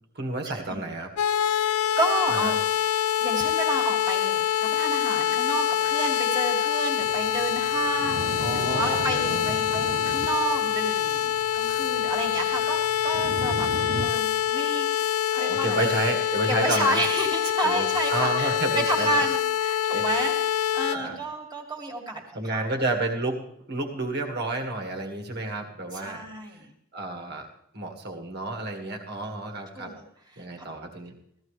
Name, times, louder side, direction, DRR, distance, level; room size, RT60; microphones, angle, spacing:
voice 1, 0.2-1.1 2.3-2.5 8.4-9.5 15.3-17.0 17.6-19.1 19.9-20.1 20.9-21.2 22.3-26.3 26.9-27.5 27.7-29.9 30.4-31.2, right 2 dB, 45° right, 3 dB, 1.8 m, -30 dB
sound 1, 1.2-21.0, left 10 dB, 80° left, 0.4 m, -25 dB
voice 2, 1.4-2.7 3.2-13.7 14.0-15.9 16.5-22.8 25.9-26.7 29.7-30.0 30.3-30.7, right 2 dB, 20° right, 1 dB, 2.2 m, -31 dB
sound 2, 7.0-14.5, right 3 dB, 70° right, 0.7 m, -37 dB
16.0 x 14.5 x 3.3 m, 0.76 s
head